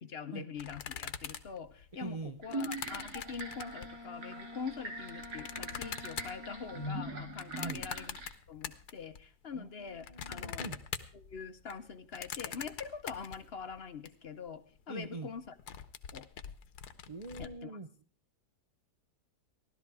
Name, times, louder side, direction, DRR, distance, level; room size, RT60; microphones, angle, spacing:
voice 1, 0.0-8.2 8.5-10.7 11.1-15.5 16.1-16.3 17.4-17.7, left 6 dB, 50° left, 11 dB, 0.9 m, -44 dB
sound 1, 0.6-4.0 4.7-9.2 9.5-14.1 14.5-14.6 14.8-15.1 15.4-17.5, left 8 dB, 75° left, 1.5 m, -44 dB
voice 2, 1.9-2.4 7.5-7.8 9.5-10.8 14.9-15.3 17.1-17.9, right 3 dB, 60° right, 8 dB, 0.3 m, -43 dB
sound 2, 2.4-8.3, right 1 dB, 80° right, 3.0 m, -42 dB
Bowed string instrument, 3.1-7.4, left 2 dB, 20° right, 0.9 m, -50 dB
16.0 x 12.5 x 4.8 m, 0.42 s
omnidirectional pair, 1.7 m